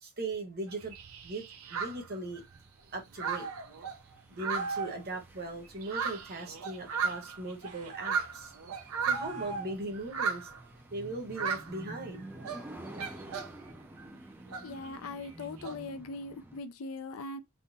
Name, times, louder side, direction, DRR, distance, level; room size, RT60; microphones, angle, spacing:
voice 1, 0.0-0.9 1.2-2.4 2.9-3.5 4.3-8.5 9.0-10.5 10.9-12.8, right 2 dB, 45° right, 1.1 m, -39 dB
sound 1, 0.7-2.7 3.0-5.3 5.6-9.5 9.9-10.7 11.3-12.0 12.3-13.7 14.0-15.7, right 6 dB, 70° right, 0.6 m, -36 dB
sound 2, 0.8-16.6, right 1 dB, 10° right, 0.4 m, -51 dB
sound 3, 3.2-3.7 4.5-5.1 7.6-8.1 9.1-9.9, right 4 dB, 90° right, 1.0 m, -39 dB
voice 2, 14.6-17.4, left 3 dB, 70° left, 0.5 m, -40 dB
3.7 x 2.1 x 3.9 m
head